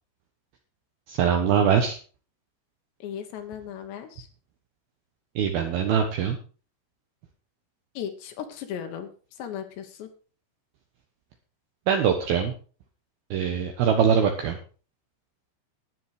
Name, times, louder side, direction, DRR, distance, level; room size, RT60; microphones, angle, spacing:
voice 1, 1.1-2.0 5.4-6.4 11.9-12.5 13.3-14.6, right 7 dB, 70° right, 4 dB, 2.6 m, -22 dB
voice 2, 3.0-4.3 8.0-9.1 9.4-10.1, left 9 dB, 70° left, 7 dB, 3.2 m, -36 dB
12.5 x 10.0 x 4.9 m, 0.38 s
omnidirectional pair, 5.4 m